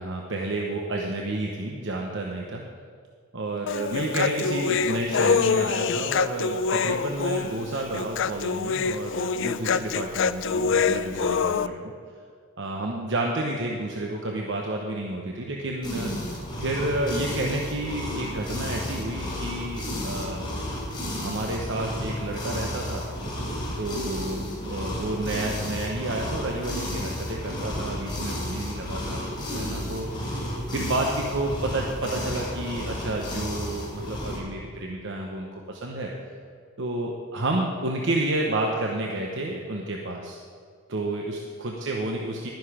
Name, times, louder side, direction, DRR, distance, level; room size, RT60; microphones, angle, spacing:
voice 1, 0.0-2.6 3.3-11.9 12.6-20.4 21.2-23.0 23.8-29.2 29.5-30.1 30.7-36.1 36.8-40.4 40.9-42.5, right 2 dB, 65° right, 0 dB, 1.0 m, -30 dB
Human voice, 3.7-11.7, left 5 dB, 65° left, 0.4 m, -25 dB
sound 1, 15.8-34.4, left 1 dB, 25° left, 3.5 m, -32 dB
12.0 x 10.5 x 5.0 m, 2.1 s
head